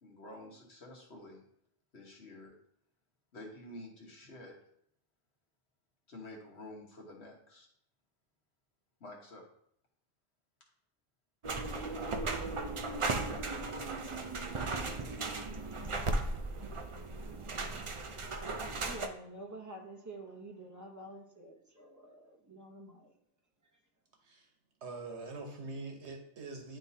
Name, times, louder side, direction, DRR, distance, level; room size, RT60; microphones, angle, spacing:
voice 1, 0.0-1.4 1.9-2.5 3.3-4.5 6.1-7.7 9.0-9.4, left 1 dB, 75° left, 0 dB, 1.5 m, -49 dB
sound 1, 11.4-19.1, right 3 dB, 40° right, 0.5 m, -36 dB
voice 2, 18.6-23.2, right 2 dB, 20° right, 1 dB, 0.9 m, -49 dB
voice 3, 24.8-26.8, right 3 dB, 85° right, 2 dB, 1.3 m, -44 dB
10.5 x 3.6 x 2.8 m, 0.69 s
omnidirectional pair, 1.1 m